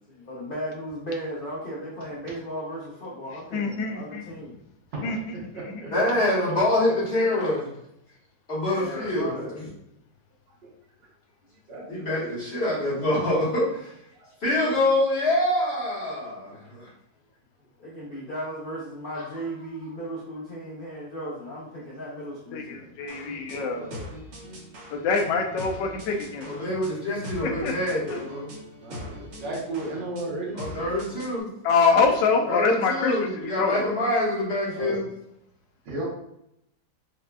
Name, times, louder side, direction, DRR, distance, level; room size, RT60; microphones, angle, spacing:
voice 1, 0.1-4.6 8.9-9.6 17.8-23.0, equal, 70° left, -6 dB, 0.5 m, -36 dB
voice 2, 3.5-4.2 5.0-5.2 8.8-9.1 22.5-23.9 25.0-26.4 27.4-28.2 31.6-33.3 33.6-33.9, left 4 dB, 90° left, 4 dB, 1.3 m, -25 dB
voice 3, 4.9-5.9 6.4-6.9 7.2-7.6 9.1-9.5 10.6-10.7 11.7-12.4 14.2-14.3 23.5-24.1 28.8-30.6 34.8-35.0 35.9-36.1, right 2 dB, 85° right, -4 dB, 1.8 m, -35 dB
voice 4, 5.9-7.7 8.5-9.7 11.9-13.9 14.4-16.9 19.1-19.2 26.4-28.5 30.5-31.5 32.4-35.1, left 1 dB, 40° left, -7 dB, 1.4 m, -25 dB
sound 1, 23.1-31.4, equal, 50° right, 0.9 m, -41 dB
4.9 x 2.4 x 2.2 m, 0.79 s
omnidirectional pair, 1.9 m